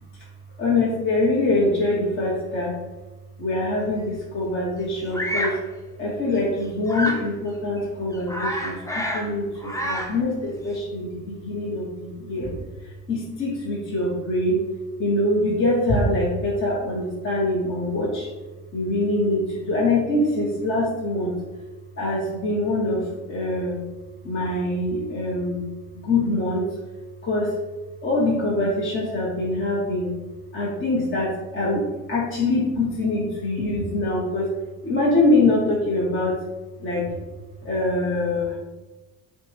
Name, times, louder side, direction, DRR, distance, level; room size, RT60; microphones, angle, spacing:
voice 1, 0.6-2.8 3.4-5.5 6.0-12.6 12.8-14.6 15.0-18.3 18.7-21.3 22.0-23.8 24.2-25.7 26.0-26.6 27.2-27.5 28.0-30.1 30.5-34.5 34.8-36.4 36.8-37.0 37.6-38.6, left 2 dB, 30° left, -5 dB, 1.0 m, -24 dB
Bird vocalization bird call bird song, 5.1-5.6 6.9-7.3 7.8-7.9 8.1-9.3 9.6-10.2, equal, 10° left, 0.6 m, -28 dB
5.5 x 2.3 x 3.3 m, 1.2 s
supercardioid pair, 85°, 40 cm